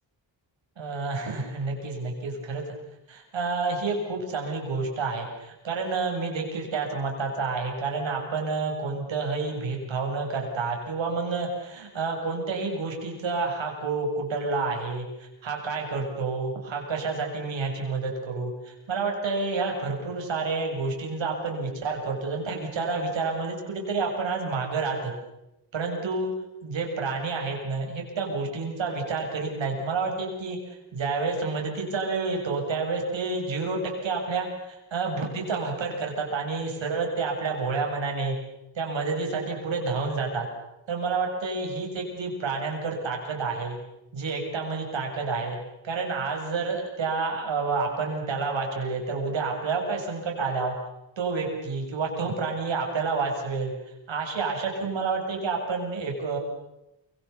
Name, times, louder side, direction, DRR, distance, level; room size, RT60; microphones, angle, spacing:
voice 1, 0.8-2.6 3.1-25.1 25.7-26.3 26.6-38.4 38.8-40.5 40.9-43.8 44.1-45.6 45.8-50.7 51.2-56.4, right 4 dB, 75° right, 1 dB, 7.3 m, -29 dB
30.0 x 25.5 x 7.2 m, 0.90 s
wide cardioid pair, 140°, 45 cm